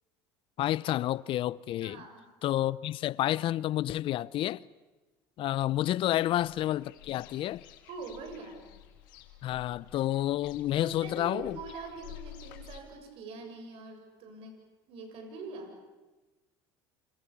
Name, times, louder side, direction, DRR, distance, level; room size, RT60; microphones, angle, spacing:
voice 1, 0.6-2.0 2.4-4.6 5.4-7.6 9.4-11.6, left 13 dB, 55° left, 0.8 m, -30 dB
voice 2, 1.8-2.3 6.0-6.3 7.9-8.7 10.8-14.6 14.9-15.7, right 4 dB, 60° right, 7.4 m, -43 dB
sound 1, 6.2-12.8, left 12 dB, 85° left, 2.4 m, -51 dB
28.0 x 27.5 x 7.2 m
supercardioid pair, 95°, 11 cm